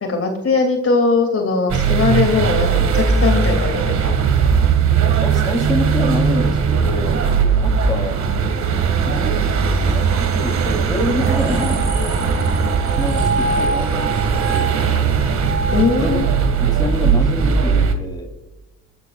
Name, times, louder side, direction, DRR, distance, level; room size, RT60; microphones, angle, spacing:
voice 1, 0.0-4.1 15.7-16.3, left 4 dB, 50° left, 4 dB, 2.6 m, -19 dB
sound 1, 1.7-17.9, right 6 dB, 65° right, 2.0 m, -18 dB
voice 2, 5.2-7.3 7.6-8.2 9.0-9.4 9.8-11.9 13.0-14.8 16.0-18.3, left 1 dB, 15° left, 3 dB, 3.1 m, -26 dB
sound 2, 11.2-16.6, right 3 dB, 10° right, 3.3 m, -26 dB
27.5 x 12.0 x 2.4 m, 1.0 s
cardioid pair, 90°, 30 cm